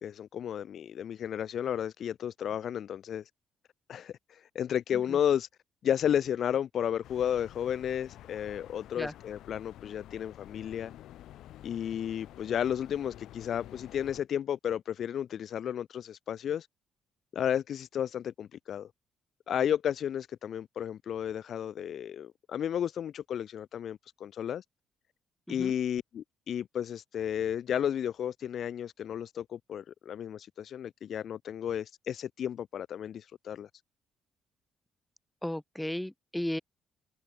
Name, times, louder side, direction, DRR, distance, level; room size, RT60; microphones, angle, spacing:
voice 1, 0.0-3.2 3.9-5.5 5.8-10.9 11.6-16.7 17.3-18.9 19.5-24.6 25.5-33.7, left 9 dB, 65° left, 0.3 m, -33 dB
sound 1, 7.0-14.2, left 13 dB, 80° left, 1.9 m, -50 dB
voice 2, 35.4-36.6, left 1 dB, 5° left, 0.9 m, -35 dB
cardioid pair, 80°, 0 cm